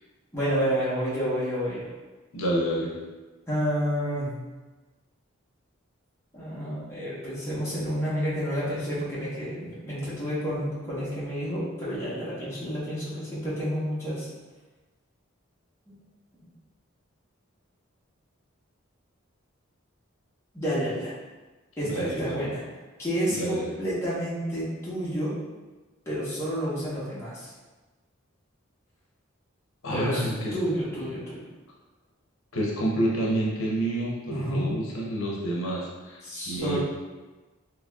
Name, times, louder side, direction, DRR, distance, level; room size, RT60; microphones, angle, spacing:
voice 1, 0.3-1.9 3.5-4.3 6.3-14.3 20.5-21.1 21.8-22.6 23.0-25.4 26.1-27.5 29.9-31.5 34.3-34.7 36.2-36.8, equal, 15° left, -10 dB, 1.0 m, -29 dB
voice 2, 2.3-2.9 21.8-22.5 23.3-23.7 29.8-30.5 32.5-36.2 36.5-36.8, right 1 dB, 75° left, -3 dB, 0.7 m, -28 dB
3.9 x 3.0 x 2.3 m, 1.2 s
head